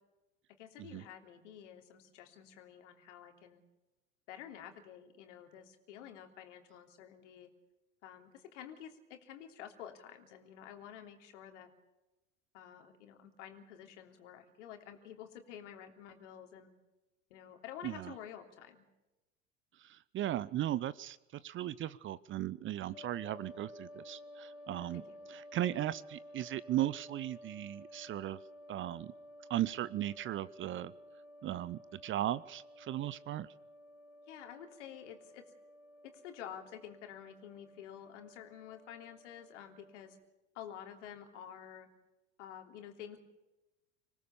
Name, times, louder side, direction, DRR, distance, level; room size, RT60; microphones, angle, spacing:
voice 1, 0.6-3.6 4.3-7.5 8.0-11.7 12.5-16.7 17.3-18.8 24.7-25.2 34.3-35.4 36.0-40.2 40.5-41.9 42.4-43.2, left 9 dB, 65° left, 4 dB, 3.3 m, -50 dB
voice 2, 17.8-18.1 19.8-25.0 25.3-28.4 28.7-29.1 29.5-30.9 31.4-33.5, right 13 dB, 30° right, 19 dB, 0.7 m, -37 dB
sound 1, 22.9-40.2, left 1 dB, 80° left, 1.8 m, -54 dB
25.5 x 18.0 x 7.0 m, 1.0 s
figure-of-eight pair, 75°, 39 cm